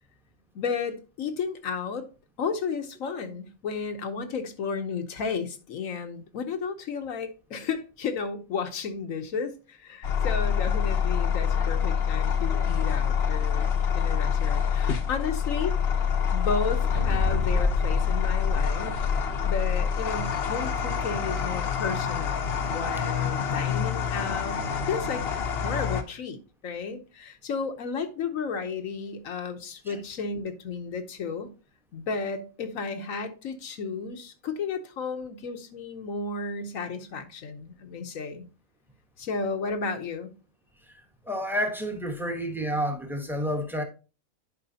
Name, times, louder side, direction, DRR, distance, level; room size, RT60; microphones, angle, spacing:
voice 1, 0.5-2.0 2.4-15.8 16.3-19.1 19.4-25.2 25.6-31.5 31.9-38.5 39.2-40.3, left 5 dB, 75° left, 1.3 m, -33 dB
sound 1, 10.0-26.0, left 7 dB, 50° left, 1.0 m, -26 dB
sound 2, 17.0-19.7, equal, 55° right, 1.7 m, -30 dB
voice 2, 41.3-43.8, equal, ahead, 1.0 m, -29 dB
11.0 x 4.9 x 2.8 m
omnidirectional pair, 1.4 m